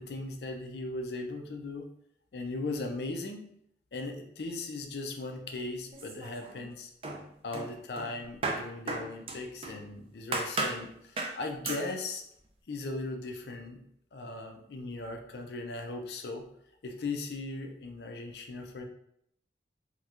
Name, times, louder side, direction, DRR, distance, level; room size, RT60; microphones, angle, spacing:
voice 1, 0.0-1.9 2.3-3.5 3.9-6.9 7.4-12.2 12.7-13.8 14.1-16.5 16.8-18.8, left 2 dB, 65° left, 4 dB, 0.4 m, -38 dB
sound 1, 5.9-6.7 7.0-9.8 10.3-10.8 11.2-11.4 11.6-11.9, right 3 dB, 30° right, 0.4 m, -35 dB
4.2 x 2.3 x 2.4 m, 0.72 s
head